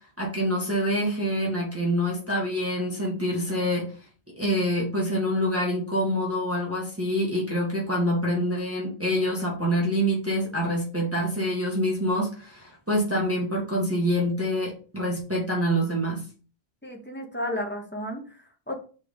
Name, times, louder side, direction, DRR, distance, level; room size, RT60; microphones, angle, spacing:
voice 1, 0.2-3.9 4.4-16.2, equal, 15° right, -5 dB, 1.7 m, -26 dB
voice 2, 16.8-18.8, left 1 dB, 10° left, 1 dB, 1.2 m, -33 dB
4.7 x 4.2 x 5.3 m, 0.39 s
omnidirectional pair, 1.0 m